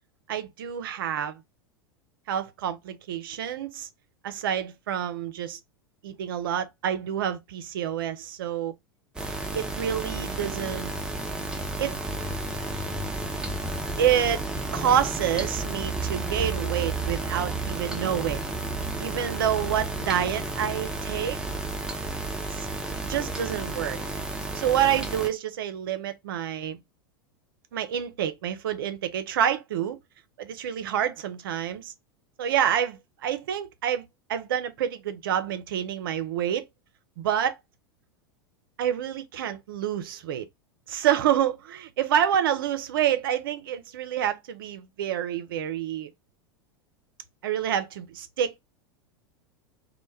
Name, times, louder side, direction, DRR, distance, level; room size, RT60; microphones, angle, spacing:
voice 1, 0.3-1.4 2.3-3.9 4.2-5.6 6.0-8.7 9.5-10.9 11.8-12.0 14.0-14.5 14.7-18.4 19.0-21.4 22.6-24.0 24.5-26.8 27.7-30.0 30.4-31.9 32.4-36.6 37.2-37.6 38.8-40.5 40.9-46.1 47.4-48.6, right 10 dB, 65° right, 0.5 m, -28 dB
sound 1, 9.2-25.3, right 2 dB, 5° right, 0.5 m, -32 dB
2.1 x 2.1 x 3.1 m
figure-of-eight pair, 90°, 13 cm